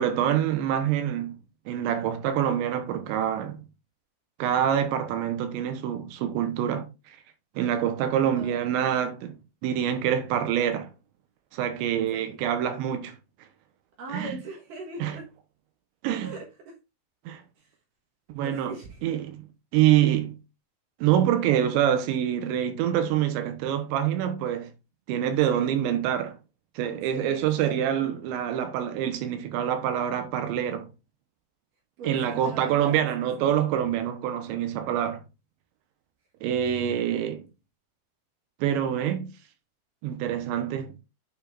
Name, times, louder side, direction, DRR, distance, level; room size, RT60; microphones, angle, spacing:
voice 1, 0.0-1.4 1.7-3.6 4.4-6.9 7.6-10.9 11.5-13.2 14.1-14.4 15.0-15.2 16.0-16.3 17.3-17.4 18.3-18.7 19.0-19.4 19.7-20.4 21.0-24.7 25.1-26.4 26.8-30.9 32.0-35.2 36.4-37.4 38.6-39.3 40.0-40.9, right 10 dB, 90° right, 3.4 m, -26 dB
voice 2, 8.3-8.7 12.0-12.4 14.0-15.3 16.2-16.7 17.6-17.7 18.4-19.2 25.5-25.9 27.1-28.2 32.0-33.5 36.6-37.2, right 4 dB, 65° right, 2.5 m, -40 dB
9.5 x 5.1 x 2.5 m
omnidirectional pair, 5.0 m